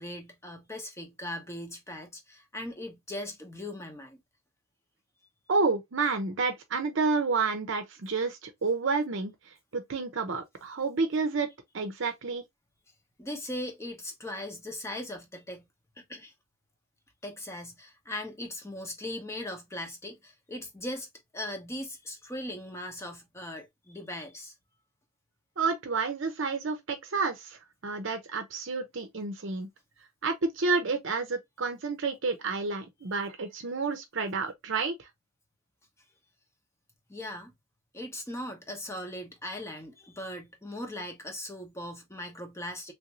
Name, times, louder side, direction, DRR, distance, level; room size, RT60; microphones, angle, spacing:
voice 1, 0.0-4.2 13.2-15.7 16.0-16.3 17.2-21.1 21.3-24.5 37.1-37.5 37.9-42.9, left 1 dB, 15° left, 0.8 m, -39 dB
voice 2, 5.5-9.3 9.7-11.5 11.7-12.4 25.6-27.6 27.8-29.7 30.2-35.1, right 4 dB, 60° right, 0.7 m, -30 dB
3.4 x 2.6 x 2.9 m
head